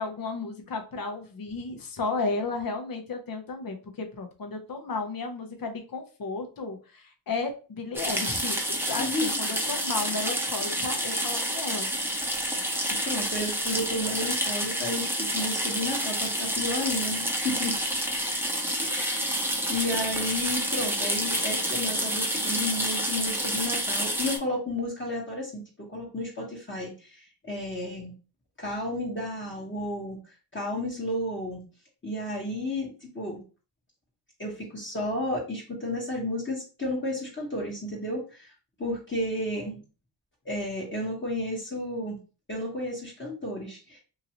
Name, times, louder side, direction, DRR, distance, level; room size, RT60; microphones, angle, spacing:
voice 1, 0.0-11.9, left 3 dB, 50° left, 4 dB, 0.9 m, -33 dB
sound 1, 7.9-24.4, equal, 5° right, 0.8 m, -29 dB
voice 2, 9.0-9.3 12.9-17.8 18.8-19.4 19.7-28.1 28.6-31.6 32.0-33.4 34.4-38.5 38.8-39.8 40.4-42.2 42.5-44.0, left 1 dB, 25° left, -3 dB, 1.3 m, -32 dB
2.9 x 2.6 x 2.9 m, 0.34 s
cardioid pair, 50°, 45 cm